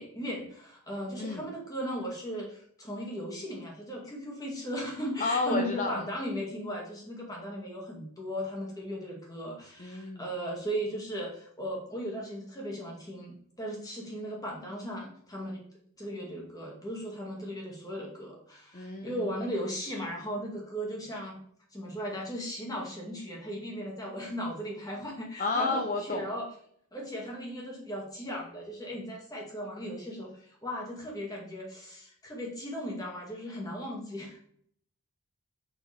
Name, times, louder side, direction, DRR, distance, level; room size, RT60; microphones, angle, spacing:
voice 1, 0.0-15.6 16.0-21.4 21.7-26.5 26.9-34.4, equal, 15° left, -2 dB, 2.1 m, -37 dB
voice 2, 5.2-6.1 9.8-10.3 18.7-19.3 25.4-26.3, left 3 dB, 35° left, 3 dB, 0.6 m, -31 dB
6.3 x 6.2 x 3.4 m, 0.63 s
head